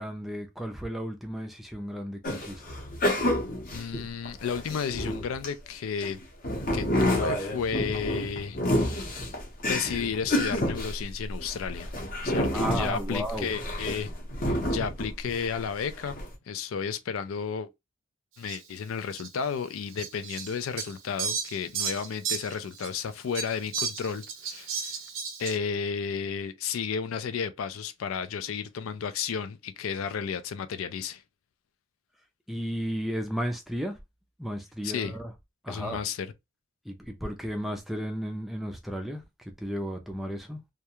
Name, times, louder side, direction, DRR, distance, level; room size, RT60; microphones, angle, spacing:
voice 1, 0.0-2.6 12.5-13.5 32.5-34.0 34.4-35.3 35.6-36.0 36.8-40.6, equal, ahead, 0.3 m, -34 dB
sound 1, 2.2-5.5 6.0-15.6 16.0-16.3, left 1 dB, 40° left, 0.7 m, -29 dB
voice 2, 3.7-6.2 6.7-9.2 9.6-11.9 12.2-14.1 14.5-16.2 16.5-17.7 18.4-24.9 25.4-31.2 34.8-35.1 35.7-36.3, left 6 dB, 85° left, 0.4 m, -33 dB
Fowl, 18.5-18.6 19.1-19.3 20.0-23.0 23.3-25.6, right 6 dB, 85° right, 0.7 m, -33 dB
2.3 x 2.2 x 2.8 m
head